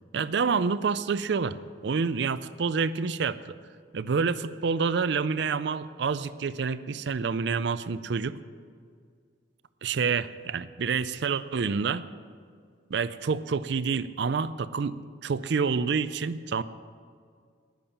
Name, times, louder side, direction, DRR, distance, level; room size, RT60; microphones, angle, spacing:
voice 1, 0.1-1.6 1.8-3.6 3.9-8.4 9.8-12.1 12.9-16.6, right 5 dB, 60° right, 14 dB, 0.4 m, -28 dB
11.0 x 10.5 x 7.1 m, 2.1 s
head